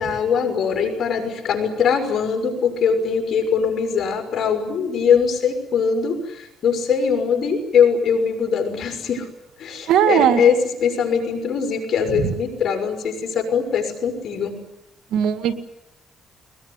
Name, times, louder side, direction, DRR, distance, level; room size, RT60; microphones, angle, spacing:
voice 1, 0.0-9.3 9.6-14.6, left 6 dB, 60° left, 3 dB, 5.9 m, -21 dB
voice 2, 9.9-10.4 12.2-12.3 15.1-15.6, right 9 dB, 85° right, 8 dB, 2.1 m, -18 dB
21.5 x 21.0 x 9.7 m, 0.89 s
cardioid pair, 90°, 0 cm